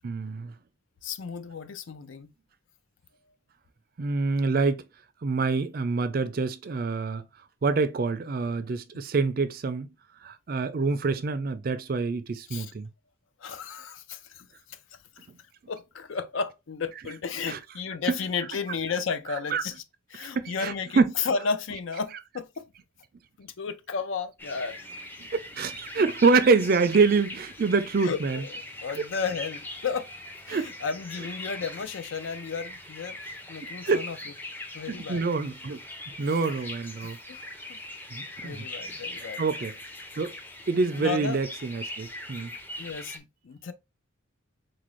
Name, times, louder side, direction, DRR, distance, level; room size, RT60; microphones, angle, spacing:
voice 1, 0.0-0.5 4.0-4.8 5.2-7.3 7.6-9.9 10.2-12.9 17.5-17.6 18.1-18.2 19.5-19.6 20.2-21.1 25.3-28.4 30.5-30.7 33.8-34.1 34.9-35.8 36.2-37.2 38.1-38.6 39.4-39.7 40.2-40.3 40.7-42.5, right 4 dB, 45° right, 0.4 m, -26 dB
voice 2, 1.0-2.3 12.5-12.7 13.4-14.8 15.7-19.8 20.1-22.6 23.4-24.8 28.0-30.1 30.5-34.3 34.7-35.2 36.6-36.7 37.0-37.4 37.7-37.8 38.4-39.4 41.0-41.4 42.8-43.7, left 5 dB, 70° left, 0.5 m, -33 dB
sound 1, 24.4-43.2, left 1 dB, 10° left, 0.5 m, -41 dB
3.9 x 2.5 x 3.0 m
head